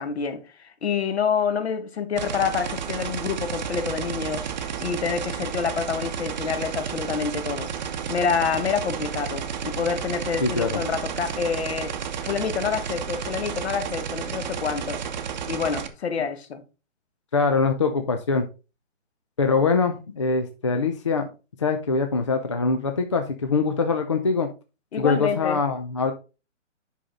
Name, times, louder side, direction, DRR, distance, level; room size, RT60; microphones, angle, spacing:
voice 1, 0.0-15.0 15.5-16.6 24.9-25.6, left 6 dB, 55° left, 1.5 m, -27 dB
sound 1, 2.2-15.9, right 7 dB, 35° right, 0.9 m, -32 dB
voice 2, 10.4-10.8 17.3-18.5 19.4-21.3 21.6-24.5 25.0-26.1, left 4 dB, 25° left, 0.5 m, -23 dB
8.3 x 5.7 x 3.7 m
hypercardioid pair, 160°, 38 cm